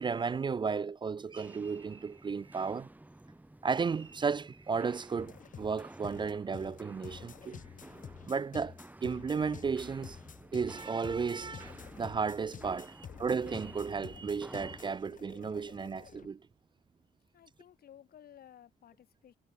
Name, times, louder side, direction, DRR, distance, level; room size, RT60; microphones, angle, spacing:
voice 1, 0.0-2.9 3.6-7.6 8.3-8.7 9.0-10.2 10.5-16.4, right 5 dB, 30° right, 0.4 m, -34 dB
Walk footsteps, 1.2-15.0, right 1 dB, 10° right, 6.2 m, -53 dB
sound 1, 5.2-16.3, left 7 dB, 55° left, 4.6 m, -49 dB
voice 2, 17.3-19.4, left 10 dB, 75° left, 2.6 m, -56 dB
cardioid pair, 115°, 16 cm